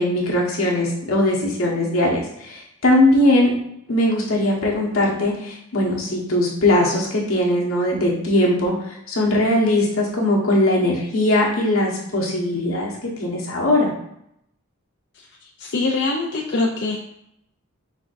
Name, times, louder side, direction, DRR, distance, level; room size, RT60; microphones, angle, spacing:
voice 1, 0.0-3.5 3.9-13.9, left 1 dB, 85° left, -3 dB, 1.3 m, -20 dB
voice 2, 15.1-17.0, left 3 dB, 55° left, -1 dB, 0.5 m, -24 dB
6.0 x 3.5 x 2.6 m, 0.76 s
head